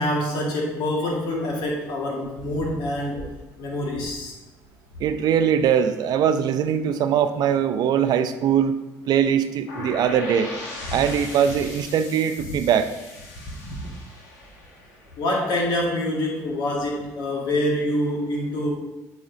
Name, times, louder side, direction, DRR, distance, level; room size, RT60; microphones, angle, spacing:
voice 1, 0.0-3.3 3.6-4.4 10.9-11.0 13.6-13.9 15.2-18.7, left 1 dB, 65° left, -1 dB, 1.9 m, -26 dB
voice 2, 5.0-8.8 9.1-10.5 10.9-12.9, right 8 dB, 60° right, 10 dB, 0.5 m, -21 dB
sound 1, 9.7-15.5, left 2 dB, 85° left, 1.4 m, -38 dB
8.5 x 5.0 x 2.7 m, 1.1 s
supercardioid pair, 70°, 8 cm